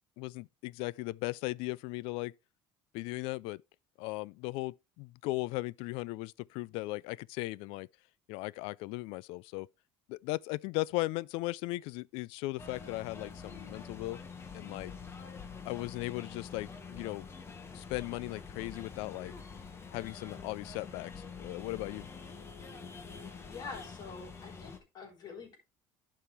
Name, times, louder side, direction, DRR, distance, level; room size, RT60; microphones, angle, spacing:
voice 1, 0.2-2.3 2.9-3.6 4.0-7.9 8.3-9.7 10.1-14.2 14.5-14.9 15.7-17.2 17.7-19.3 19.9-22.1, left 21 dB, 75° left, 0.4 m, -37 dB
sound 1, 12.6-24.8, left 5 dB, 25° left, 1.6 m, -46 dB
voice 2, 23.5-25.6, left 5 dB, 45° left, 4.3 m, -46 dB
11.0 x 5.7 x 3.3 m
cardioid pair, 125°, 10 cm